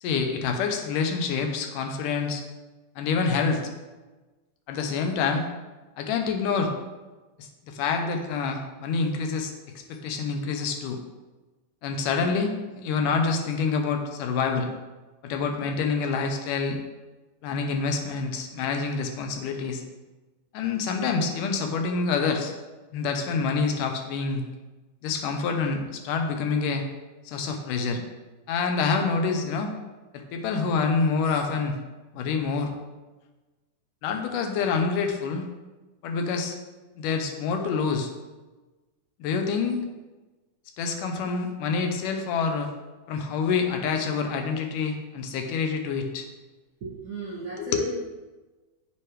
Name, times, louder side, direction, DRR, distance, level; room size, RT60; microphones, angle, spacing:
voice 1, 0.0-2.4 3.0-3.6 4.7-5.5 6.0-6.7 7.4-9.5 9.9-11.0 11.8-12.5 12.8-14.7 15.2-16.8 17.4-19.8 20.5-22.5 22.9-24.4 25.0-26.8 27.3-28.0 28.5-29.7 30.1-31.8 32.1-32.7 34.0-35.5 36.0-36.6 37.0-38.1 39.2-39.8 40.8-42.7 43.1-46.3 47.6-47.9, left 5 dB, 80° left, 4 dB, 2.3 m, -27 dB
voice 2, 46.8-47.9, right 3 dB, 35° right, -7 dB, 1.5 m, -35 dB
9.3 x 7.8 x 3.3 m, 1.2 s
omnidirectional pair, 3.7 m